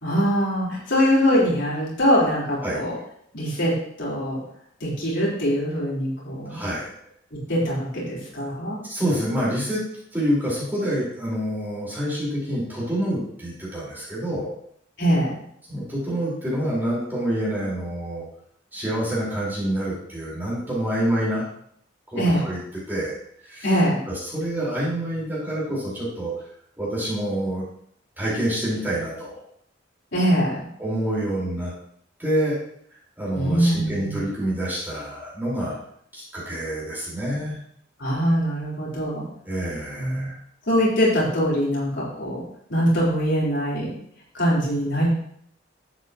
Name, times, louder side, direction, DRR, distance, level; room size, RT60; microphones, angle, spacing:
voice 1, 0.0-2.9 3.3-4.4 4.8-6.6 7.5-8.8 15.0-15.4 22.1-22.4 23.6-24.0 30.1-30.7 33.3-34.2 38.0-39.2 40.0-40.3 40.7-42.4 42.7-43.9 44.3-45.1, equal, 70° left, -6 dB, 4.4 m, -22 dB
voice 2, 6.5-6.9 8.8-9.8 10.1-14.5 15.7-18.3 18.7-21.4 22.1-22.6 22.9-23.1 23.4-23.7 24.1-26.3 26.8-27.6 28.2-29.4 30.8-31.7 32.2-32.6 33.2-35.8 36.1-37.6 39.4-40.3, right 1 dB, 10° right, -7 dB, 4.9 m, -27 dB
12.0 x 8.9 x 3.1 m, 0.68 s
head